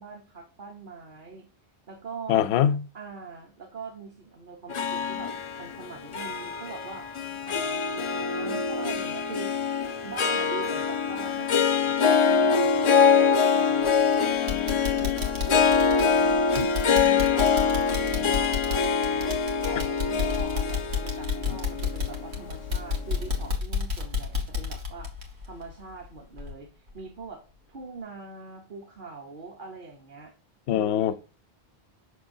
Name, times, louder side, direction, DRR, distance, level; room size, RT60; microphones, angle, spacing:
voice 1, 0.0-1.5 1.9-2.5 2.9-9.7 10.0-13.9 14.2-16.5 16.9-17.7 18.0-19.4 19.7-25.1 25.5-27.4 27.7-30.3 30.7-31.1, right 4 dB, 55° right, 1.0 m, -42 dB
voice 2, 2.3-2.8 16.6-16.7 21.5-21.6 30.7-31.1, left 10 dB, 80° left, 0.8 m, -23 dB
Harp, 4.7-23.2, left 6 dB, 50° left, 0.3 m, -24 dB
sound 1, 13.8-14.1 14.5-26.1 26.4-26.5 27.0-27.1, left 5 dB, 80° right, 1.6 m, -31 dB
6.5 x 5.9 x 2.6 m
omnidirectional pair, 1.1 m